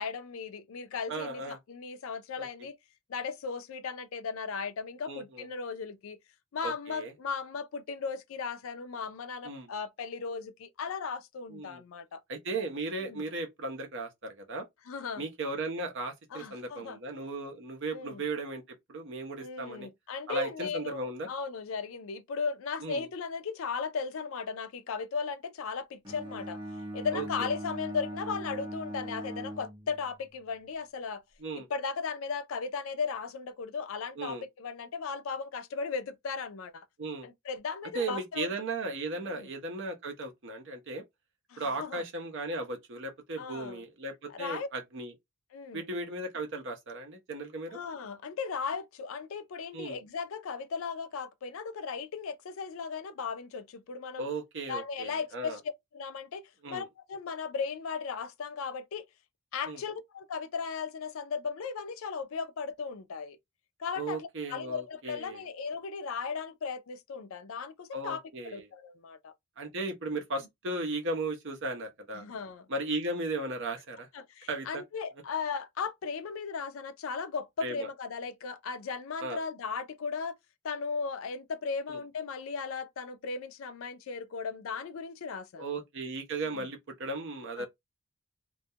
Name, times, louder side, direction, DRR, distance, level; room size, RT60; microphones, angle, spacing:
voice 1, 0.0-2.8 3.1-6.2 6.5-12.2 13.0-13.2 14.9-15.2 16.3-17.0 17.9-18.2 19.4-26.6 26.9-31.2 31.5-36.9 37.2-38.5 39.2-39.5 41.5-42.0 43.4-43.8 44.3-44.7 45.5-45.9 47.7-54.2 54.7-55.6 55.9-59.0 59.5-63.4 63.8-69.3 72.1-72.7 74.1-80.3 80.6-85.8 86.4-86.7 87.6-87.7, left 5 dB, 65° left, 0.4 m, -36 dB
voice 2, 1.1-1.6 2.4-2.5 5.1-5.5 6.6-7.1 9.4-9.7 11.5-11.8 12.3-14.7 15.2-19.9 20.3-21.3 22.8-23.1 27.1-27.5 31.4-31.7 34.2-34.4 37.0-37.3 37.9-41.0 41.6-45.1 45.7-47.8 49.7-50.0 54.2-55.6 56.6-56.9 59.7-59.8 64.0-65.4 67.9-68.6 69.6-72.2 72.7-74.1 74.5-74.8 77.6-77.9 79.2-79.4 81.9-82.0 85.6-87.7, right 2 dB, 55° right, 0.6 m, -36 dB
Bowed string instrument, 26.0-30.3, right 1 dB, 20° right, 0.8 m, -40 dB
2.2 x 2.1 x 2.7 m
head